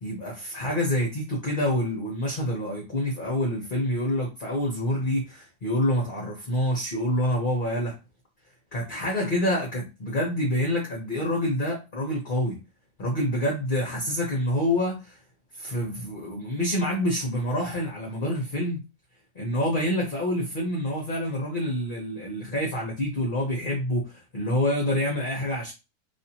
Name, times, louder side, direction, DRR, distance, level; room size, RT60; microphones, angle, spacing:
voice 1, 0.0-8.0 8.7-12.6 13.0-15.2 15.6-18.8 19.3-25.7, left 1 dB, 40° left, 0.8 m, -27 dB
3.4 x 2.8 x 2.8 m
omnidirectional pair, 1.8 m